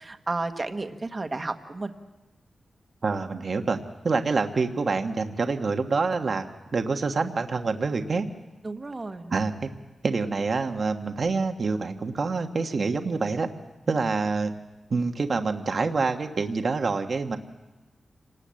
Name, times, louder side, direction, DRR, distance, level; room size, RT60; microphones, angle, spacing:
voice 1, 0.0-1.9 8.6-9.3, right 3 dB, 25° right, 7 dB, 1.3 m, -32 dB
voice 2, 3.0-3.8 4.0-6.4 6.7-8.2 9.3-9.7 10.0-13.5 13.9-14.5 14.9-17.4, right 4 dB, 50° right, 5 dB, 1.3 m, -26 dB
27.5 x 19.0 x 7.6 m, 1.1 s
wide cardioid pair, 155°, 0 cm